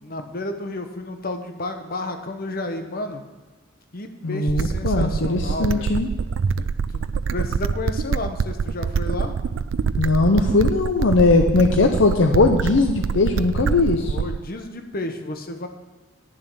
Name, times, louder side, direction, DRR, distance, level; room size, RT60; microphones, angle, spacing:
voice 1, 0.0-3.2 3.9-6.0 6.6-9.4 13.9-15.7, left 2 dB, 50° left, 6 dB, 1.1 m, -32 dB
voice 2, 4.2-6.1 10.0-14.2, left 3 dB, 70° left, 5 dB, 0.7 m, -19 dB
sound 1, 4.5-14.5, right 5 dB, 75° right, 0.4 m, -25 dB
10.5 x 7.2 x 6.2 m, 1.3 s
head